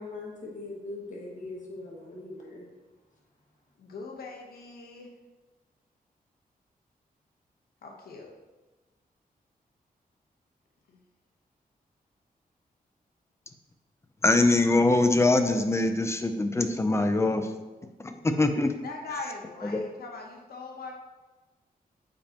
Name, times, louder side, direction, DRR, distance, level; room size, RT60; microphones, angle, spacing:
voice 1, 0.0-2.7, left 2 dB, 55° left, -3 dB, 1.8 m, -40 dB
voice 2, 3.8-5.1 7.8-8.3 10.9-11.0 18.8-20.9, left 3 dB, 90° left, 1 dB, 1.0 m, -41 dB
voice 3, 14.2-17.5 18.0-18.7 19.7-19.8, left 2 dB, 15° left, 7 dB, 0.5 m, -23 dB
8.6 x 5.2 x 2.9 m, 1.2 s
wide cardioid pair, 155°, 15 cm